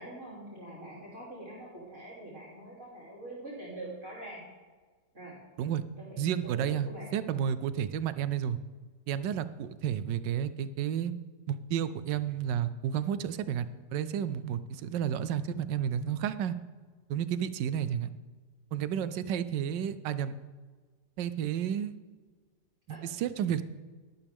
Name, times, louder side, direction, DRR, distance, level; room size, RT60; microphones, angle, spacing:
voice 1, 0.0-4.4 5.1-5.4 6.0-7.1 22.9-23.0, right 1 dB, 40° right, -6 dB, 3.4 m, -44 dB
voice 2, 6.2-8.6 9.1-11.1 11.5-16.6 17.1-18.1 18.7-20.3 21.2-21.9 22.9-23.6, right 9 dB, 80° right, 14 dB, 1.3 m, -31 dB
12.0 x 12.0 x 3.5 m, 1.4 s
omnidirectional pair, 1.9 m